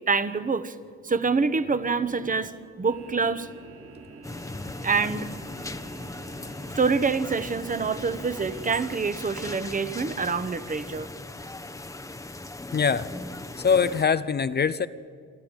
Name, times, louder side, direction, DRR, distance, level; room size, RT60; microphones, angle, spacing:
voice 1, 0.1-0.8 1.0-3.5 4.8-5.3 6.7-11.1, right 4 dB, 25° right, 13 dB, 1.2 m, -26 dB
sound 1, 2.8-8.6, right 3 dB, 50° right, 3.4 m, -46 dB
sound 2, 4.2-14.1, left 2 dB, 10° left, 1.0 m, -38 dB
voice 2, 12.7-13.1 13.6-14.9, left 6 dB, 35° left, 14 dB, 0.7 m, -22 dB
28.0 x 12.5 x 9.0 m, 2.2 s
cardioid pair, 90°, 30 cm